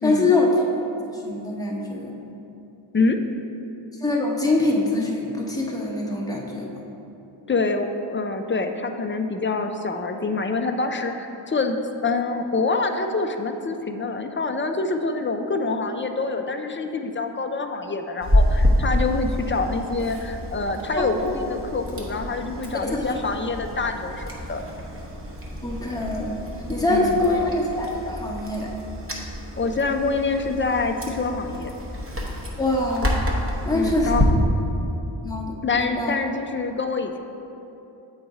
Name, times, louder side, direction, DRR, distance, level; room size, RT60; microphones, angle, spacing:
voice 1, 0.0-0.7 1.2-2.2 4.0-6.7 22.9-23.2 25.6-26.4 26.7-28.7 32.6-33.2 33.7-34.2 35.2-36.1, left 2 dB, 5° left, -3 dB, 0.9 m, -24 dB
voice 2, 7.5-11.8 12.0-24.6 26.9-27.2 29.6-31.7 33.7-34.3 35.6-37.2, left 3 dB, 25° left, 6 dB, 0.4 m, -26 dB
Chewing mastication, 18.2-34.2, left 1 dB, 25° right, 0.9 m, -28 dB
7.7 x 4.0 x 4.8 m, 3.0 s
wide cardioid pair, 75°, 49 cm